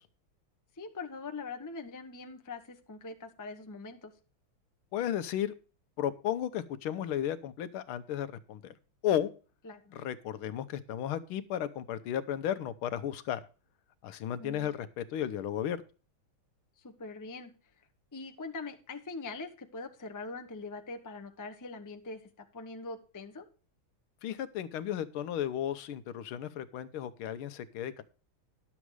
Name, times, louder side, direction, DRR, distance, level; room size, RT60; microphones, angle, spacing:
voice 1, 0.8-4.1 9.6-9.9 14.4-14.7 16.8-17.5 18.1-23.5, left 3 dB, 25° left, 4 dB, 0.4 m, -43 dB
voice 2, 4.9-5.5 6.0-8.7 9.0-9.3 9.9-13.4 14.0-15.8 24.2-28.0, left 10 dB, 85° left, 13 dB, 1.6 m, -34 dB
11.0 x 7.3 x 4.7 m, 0.35 s
omnidirectional pair, 2.3 m